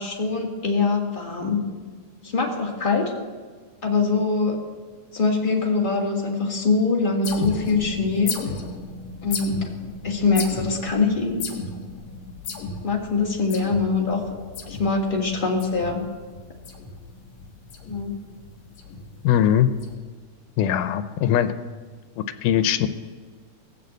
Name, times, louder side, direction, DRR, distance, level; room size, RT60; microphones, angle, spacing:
voice 1, 0.0-1.6 2.2-3.1 3.8-4.6 5.1-8.3 9.2-9.7 10.0-11.4 12.8-14.2 14.7-16.0 17.9-18.1, left 4 dB, 25° left, 0 dB, 1.2 m, -23 dB
sound 1, 7.2-19.9, left 4 dB, 65° left, 2.5 m, -35 dB
voice 2, 19.2-19.7 20.6-21.5 22.4-22.9, left 10 dB, 90° left, 10 dB, 2.2 m, -20 dB
18.5 x 6.8 x 7.8 m, 1.5 s
omnidirectional pair, 3.6 m